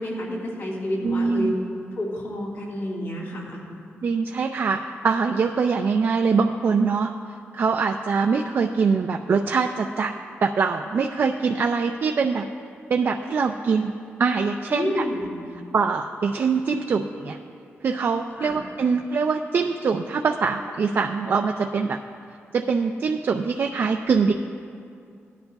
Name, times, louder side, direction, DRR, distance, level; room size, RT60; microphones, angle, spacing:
voice 1, 0.0-1.5 2.0-3.6 14.7-15.3 18.4-18.6, left 1 dB, 70° left, -4 dB, 2.7 m, -29 dB
voice 2, 1.0-1.5 4.0-7.1 7.5-10.1 10.4-12.4 12.9-13.9 14.2-15.0 15.7-17.4 17.8-22.0 22.5-24.3, right 5 dB, 55° right, 3 dB, 0.4 m, -23 dB
17.0 x 10.5 x 2.3 m, 2.4 s
wide cardioid pair, 115°, 5 cm